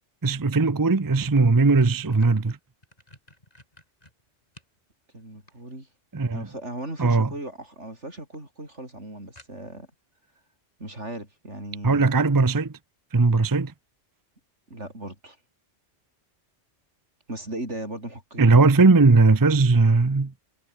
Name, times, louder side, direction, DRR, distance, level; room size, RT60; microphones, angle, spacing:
voice 1, 0.2-2.6 6.1-6.5 7.0-7.3 11.8-12.8 13.1-13.7 18.4-20.3, right 3 dB, 20° right, 0.7 m, -19 dB
sound 1, 1.8-4.8 5.2-6.1 7.2-7.6 7.9-8.0 8.3-8.4 8.7-8.8 9.4-9.9, left 1 dB, 35° left, 6.8 m, -53 dB
voice 2, 5.1-5.9 6.3-9.9 10.8-12.2 14.7-15.4 17.3-18.5, right 1 dB, 80° right, 7.9 m, -37 dB
omnidirectional pair, 1.2 m